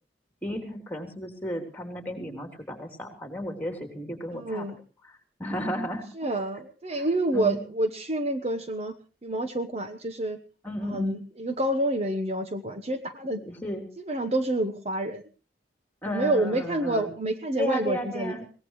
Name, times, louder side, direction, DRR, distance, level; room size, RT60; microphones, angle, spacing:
voice 1, 0.4-4.7 5.0-6.1 6.9-7.6 10.6-11.2 13.4-13.9 16.0-17.1 17.6-18.5, equal, 10° left, 5 dB, 3.4 m, -34 dB
voice 2, 4.3-4.8 6.2-8.9 9.2-10.4 10.8-13.4 14.1-15.2 16.1-18.4, right 1 dB, 35° right, 8 dB, 1.1 m, -28 dB
22.5 x 18.5 x 3.2 m, 0.36 s
head